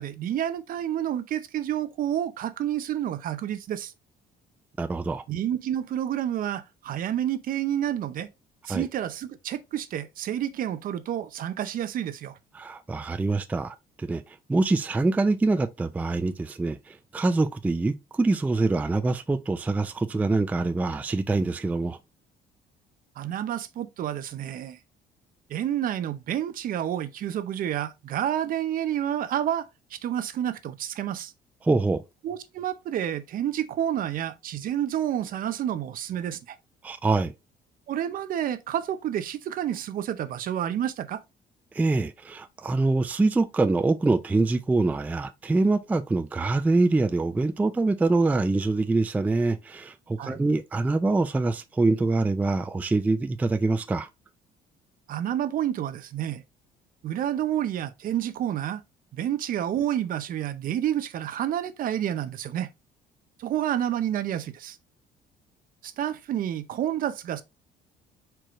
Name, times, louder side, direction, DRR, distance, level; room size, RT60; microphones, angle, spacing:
voice 1, 0.0-3.9 5.3-8.3 8.7-12.4 23.2-24.8 25.5-31.3 32.2-36.6 37.9-41.2 50.2-50.4 55.1-56.4 57.0-58.8 59.1-62.7 63.4-64.8 65.8-67.4, right 11 dB, 55° right, 0.6 m, -29 dB
voice 2, 4.8-5.2 8.7-8.9 12.5-22.0 31.6-32.0 36.8-37.3 41.7-54.1, right 3 dB, 10° right, 0.3 m, -25 dB
4.7 x 4.5 x 2.4 m
cardioid pair, 110°, 17 cm